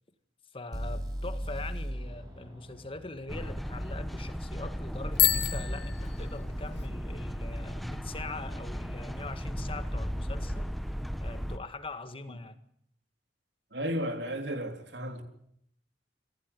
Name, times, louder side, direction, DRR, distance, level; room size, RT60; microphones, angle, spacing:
voice 1, 0.5-10.7 11.2-12.6, left 3 dB, 30° left, 1.8 m, -42 dB
sound 1, 0.7-4.7, equal, 25° right, 7.7 m, -38 dB
sound 2, 3.3-11.6, equal, ahead, 1.0 m, -35 dB
Bicycle bell, 5.1-6.9, left 14 dB, 75° left, 2.0 m, -29 dB
voice 2, 13.7-15.2, equal, 75° right, 3.6 m, -33 dB
25.5 x 16.0 x 9.9 m
head